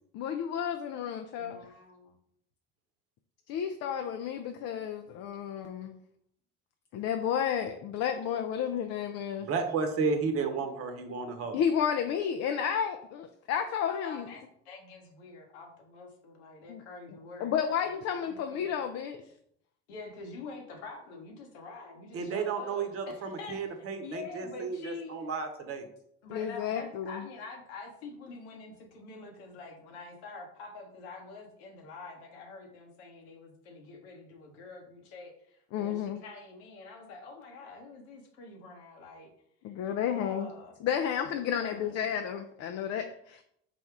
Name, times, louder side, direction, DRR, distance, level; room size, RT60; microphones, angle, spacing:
voice 1, 0.1-1.6 3.5-6.0 6.9-9.5 11.5-14.3 16.7-16.8 17.4-19.2 26.3-27.3 35.7-36.2 39.6-40.5 40.8-43.4, left 8 dB, 55° left, 6 dB, 0.5 m, -32 dB
voice 2, 1.4-2.1 13.9-18.9 19.9-25.3 26.2-39.3 39.9-40.7 41.4-42.3, left 4 dB, 80° left, 2 dB, 1.1 m, -47 dB
voice 3, 9.4-11.6 22.1-25.9, right 4 dB, 45° right, 6 dB, 0.9 m, -32 dB
4.1 x 2.3 x 4.6 m, 0.73 s
hypercardioid pair, 75°, 31 cm